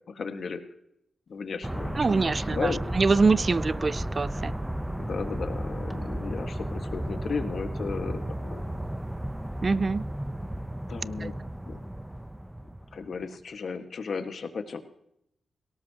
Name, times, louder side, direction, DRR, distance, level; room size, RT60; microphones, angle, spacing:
voice 1, 0.1-0.6 1.3-2.8 4.9-8.6 10.9-11.4 11.7-11.8 12.9-14.8, left 5 dB, 65° left, 1.7 m, -35 dB
Thunder / Rain, 1.5-11.4 11.7-12.0, left 3 dB, 45° left, 3.0 m, -53 dB
sound 1, 1.6-13.3, right 1 dB, 10° right, 0.8 m, -34 dB
voice 2, 2.0-4.5 9.6-10.1 11.2-11.3, right 4 dB, 45° right, 0.4 m, -24 dB
18.0 x 17.5 x 3.0 m
cardioid pair, 55°, 0 cm